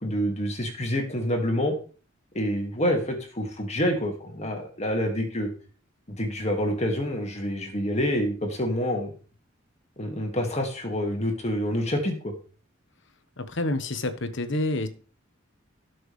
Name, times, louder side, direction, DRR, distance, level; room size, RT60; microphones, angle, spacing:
voice 1, 0.0-1.7 2.3-5.5 6.1-9.1 10.0-12.3, equal, 35° left, 3 dB, 2.1 m, -27 dB
voice 2, 13.4-14.9, left 2 dB, 65° left, 9 dB, 1.3 m, -28 dB
17.5 x 6.2 x 3.3 m, 0.38 s
head